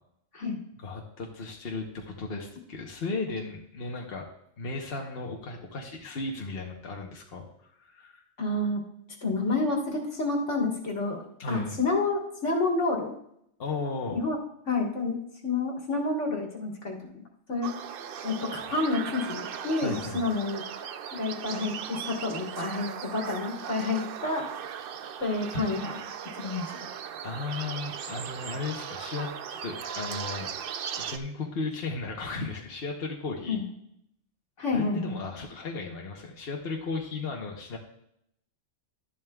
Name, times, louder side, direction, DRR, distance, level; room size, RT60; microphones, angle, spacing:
voice 1, 0.8-4.2 4.6-7.5 7.8-8.2 11.4-11.8 13.6-14.2 19.8-20.2 27.2-30.5 31.0-33.6 34.7-37.8, left 3 dB, 55° left, 0 dB, 1.2 m, -35 dB
voice 2, 8.4-8.8 9.2-13.1 14.1-14.4 14.7-15.2 15.4-17.2 17.5-17.7 18.2-20.6 21.1-24.5 25.2-26.0 26.3-26.7 33.5-33.6 34.6-35.2, left 3 dB, 75° left, 0 dB, 2.0 m, -29 dB
sound 1, 17.6-31.2, right 8 dB, 60° right, 0.7 m, -38 dB
12.5 x 11.0 x 2.3 m, 0.76 s
omnidirectional pair, 1.3 m